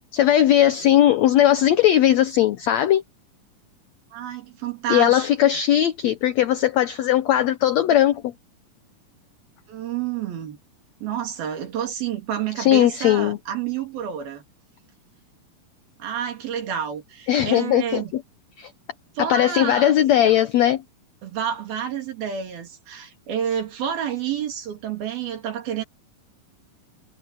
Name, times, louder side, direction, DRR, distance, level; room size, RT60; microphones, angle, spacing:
voice 1, 0.1-3.0 4.9-8.3 12.6-13.4 17.3-18.2 18.6-18.7 19.3-20.8, left 11 dB, 85° left, 1.5 m, -18 dB
voice 2, 4.1-5.3 9.7-10.6 11.0-14.4 16.0-18.1 19.1-20.0 21.2-25.8, right 9 dB, 85° right, 5.0 m, -29 dB
omnidirectional pair, 4.2 m